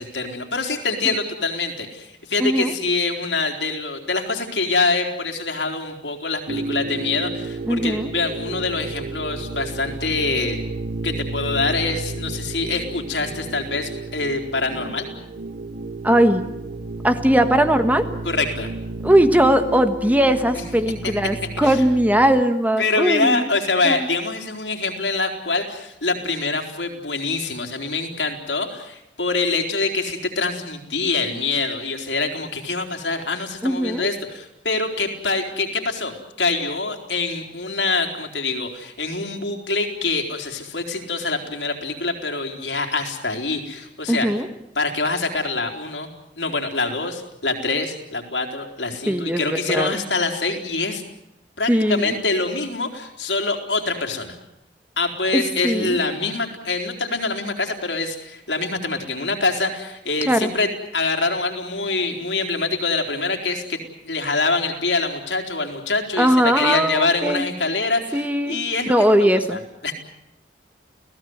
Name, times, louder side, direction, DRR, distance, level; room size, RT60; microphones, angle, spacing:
voice 1, 0.0-10.6 11.0-15.1 18.2-18.7 21.0-21.8 22.8-44.3 44.8-46.1 46.4-51.0 51.6-54.4 55.0-68.9 69.2-69.9, left 3 dB, 85° left, 3 dB, 4.2 m, -25 dB
voice 2, 2.4-2.7 7.6-8.1 16.0-16.4 17.0-18.1 19.0-23.5 23.8-24.1 33.6-34.1 44.1-44.5 49.1-50.0 51.7-52.1 55.3-56.0 60.3-60.5 66.2-67.4 68.1-68.6 68.9-69.6, right 1 dB, 10° right, 8 dB, 1.4 m, -19 dB
sound 1, 6.5-22.4, right 2 dB, 60° right, 1.1 m, -32 dB
30.0 x 17.5 x 8.0 m, 0.86 s
head